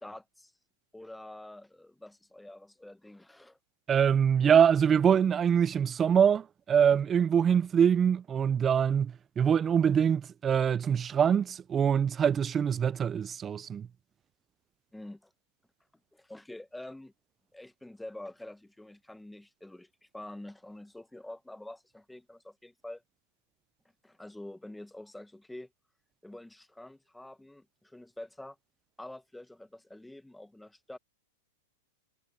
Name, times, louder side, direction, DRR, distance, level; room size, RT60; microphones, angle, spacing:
voice 1, 0.0-0.5 0.9-3.6 14.9-15.3 16.1-17.1 17.5-23.0 24.0-25.7 26.2-28.6 29.0-31.0, left 1 dB, 5° left, 0.8 m, -47 dB
voice 2, 3.9-13.9, right 8 dB, 20° right, 0.3 m, -24 dB
hypercardioid pair, 130°, 0 cm